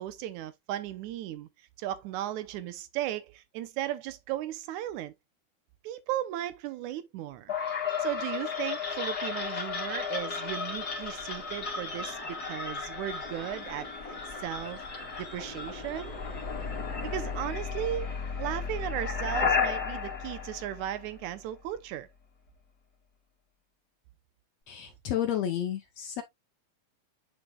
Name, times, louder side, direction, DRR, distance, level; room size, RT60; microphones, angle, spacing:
voice 1, 0.0-1.5 1.8-5.1 5.8-7.5 8.0-14.8 15.2-16.2 17.0-22.1, right 12 dB, 75° right, 1.9 m, -36 dB
sound 1, 7.5-21.4, left 5 dB, 30° left, 2.8 m, -34 dB
voice 2, 24.7-26.2, left 10 dB, 75° left, 1.6 m, -31 dB
10.0 x 4.9 x 2.3 m
omnidirectional pair, 4.0 m